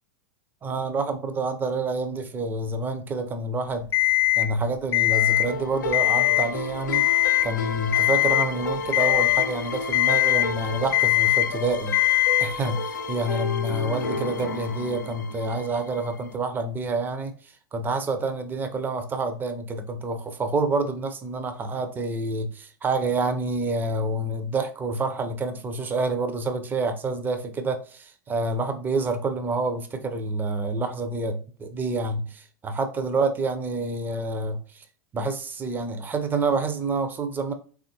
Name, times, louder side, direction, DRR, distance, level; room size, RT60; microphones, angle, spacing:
voice 1, 0.6-3.9 4.4-7.1 7.4-17.3 17.7-34.8 35.1-37.5, right 3 dB, 20° right, 0.6 m, -28 dB
Alarm, 3.9-4.5 4.9-5.5 5.9-6.5 6.9-7.5 7.9-8.5 8.9-9.5 9.9-10.5 10.9-11.5 11.9-12.5, left 18 dB, 25° left, 0.6 m, -20 dB
sound 1, 5.1-16.4, left 3 dB, 70° left, 0.5 m, -32 dB
3.8 x 3.4 x 2.8 m
figure-of-eight pair, 90°, 10 cm